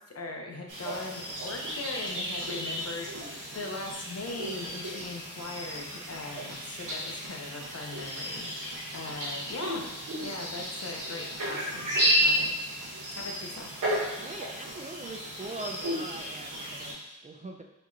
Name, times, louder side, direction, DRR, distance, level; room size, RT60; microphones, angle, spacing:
voice 1, 0.1-9.9 10.2-12.5 13.2-13.7, left 2 dB, 45° left, 1 dB, 0.8 m, -40 dB
sound 1, 0.7-16.9, equal, 65° right, 1.1 m, -33 dB
voice 2, 14.2-17.6, right 2 dB, 25° right, 2 dB, 0.4 m, -42 dB
5.2 x 3.0 x 2.7 m, 1.0 s
cardioid pair, 70°, 34 cm